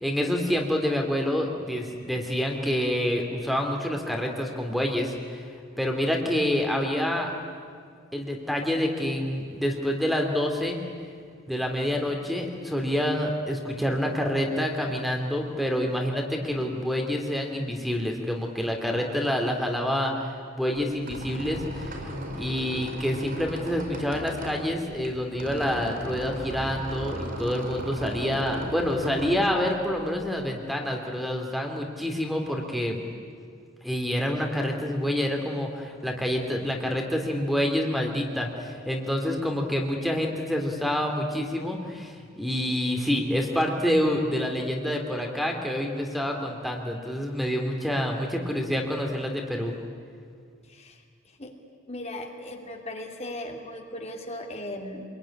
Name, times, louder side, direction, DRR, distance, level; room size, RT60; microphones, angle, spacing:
voice 1, 0.0-5.4 5.8-7.3 8.1-10.8 11.5-22.0 22.4-33.0 33.8-49.7, equal, ahead, 2 dB, 2.5 m, -27 dB
Squeak, 20.8-30.4, right 1 dB, 45° right, 5.1 m, -37 dB
voice 2, 50.7-51.5 51.9-55.1, left 1 dB, 35° left, 2 dB, 2.7 m, -38 dB
26.5 x 22.0 x 9.9 m, 2.1 s
head